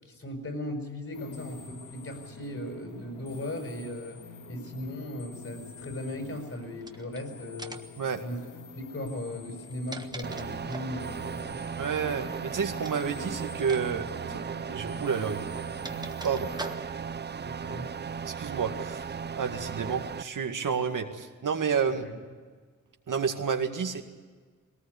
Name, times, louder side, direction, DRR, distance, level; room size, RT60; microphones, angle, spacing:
voice 1, 0.0-4.2 4.5-7.8 8.2-8.4 8.7-11.6 17.4-17.9 22.0-22.1, left 1 dB, 45° left, 4 dB, 6.1 m, -37 dB
sound 1, 1.1-16.8, left 5 dB, 75° left, 2.0 m, -48 dB
sound 2, 6.8-7.2 7.6-8.0 9.5-11.0 12.8-13.1 13.6-13.8 14.1-14.2 15.2-17.1, right 2 dB, 10° right, 1.4 m, -42 dB
sound 3, 10.2-20.2, right 6 dB, 35° right, 0.5 m, -36 dB
voice 2, 11.8-14.4 14.7-15.5 16.2-16.8 18.2-19.1 19.4-22.0 23.1-24.0, right 6 dB, 75° right, 4 dB, 2.1 m, -30 dB
21.0 x 18.5 x 8.4 m, 1.5 s
wide cardioid pair, 110°, 32 cm